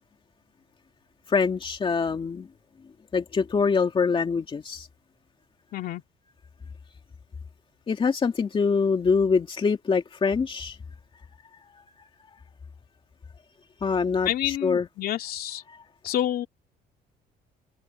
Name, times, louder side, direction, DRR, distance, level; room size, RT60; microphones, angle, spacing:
voice 1, 1.3-2.5 3.1-4.9 7.9-10.8 11.7-12.1 13.8-14.9 15.7-15.8, left 5 dB, 30° left, 2.4 m, -25 dB
voice 2, 5.7-6.0 14.3-15.6 16.0-16.5, left 12 dB, 65° left, 2.8 m, -28 dB
open air
cardioid pair, 110°, 17 cm